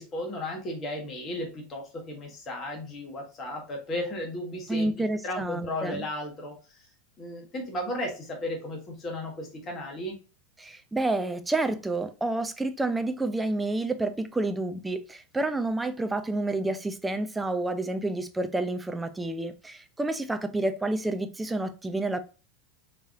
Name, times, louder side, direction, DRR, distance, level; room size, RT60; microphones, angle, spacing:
voice 1, 0.0-4.9 5.2-6.5 7.2-10.2, left 1 dB, 30° left, 1.5 m, -34 dB
voice 2, 4.7-6.0 10.6-22.2, right 2 dB, 10° right, 0.5 m, -29 dB
4.6 x 3.1 x 2.5 m
hypercardioid pair, 90°, 0 cm